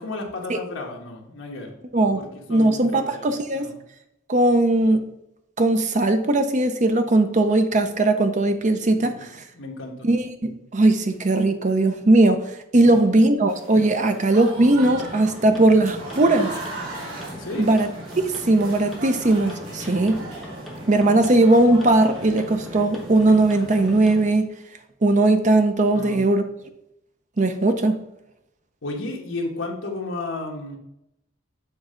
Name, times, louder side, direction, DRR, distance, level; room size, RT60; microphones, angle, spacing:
voice 1, 0.0-1.7 2.1-3.8 9.0-9.2 9.5-10.1 12.8-13.1 17.4-17.7 25.9-26.2 28.8-30.8, left 2 dB, 65° left, 1.3 m, -33 dB
voice 2, 2.5-3.7 4.3-5.0 5.6-9.3 10.0-12.4 12.7-16.5 17.6-17.9 18.2-20.2 20.9-24.5 25.0-26.4 27.4-28.0, right 2 dB, 35° right, 0.6 m, -19 dB
Applause / Crowd, 13.5-24.4, right 2 dB, 90° right, 2.3 m, -39 dB
sound 1, 14.5-24.3, equal, ahead, 0.9 m, -38 dB
7.3 x 3.3 x 5.0 m
head